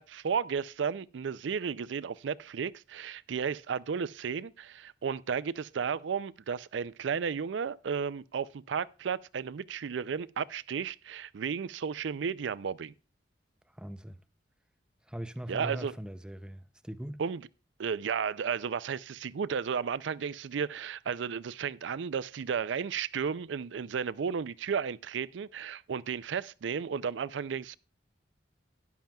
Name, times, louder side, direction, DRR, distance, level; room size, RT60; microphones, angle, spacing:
voice 1, 0.0-12.9 15.5-15.9 17.2-17.5 17.8-27.8, right 6 dB, 80° right, 0.4 m, -33 dB
voice 2, 13.7-14.2 15.1-17.2, right 1 dB, 5° right, 0.4 m, -40 dB
13.0 x 10.5 x 2.3 m
head